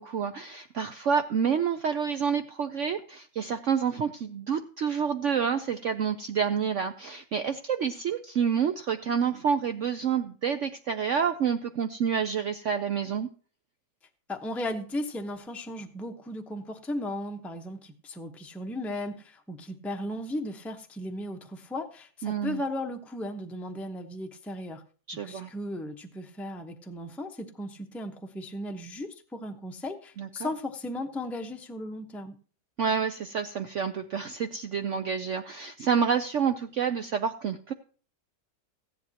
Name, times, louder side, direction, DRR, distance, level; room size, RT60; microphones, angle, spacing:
voice 1, 0.0-13.3 22.2-22.6 25.1-25.5 30.2-30.5 32.8-37.7, right 7 dB, 70° right, 9 dB, 0.7 m, -28 dB
voice 2, 14.3-24.8 25.2-32.4, left 1 dB, ahead, 4 dB, 0.5 m, -36 dB
15.0 x 10.5 x 2.9 m, 0.40 s
omnidirectional pair, 1.9 m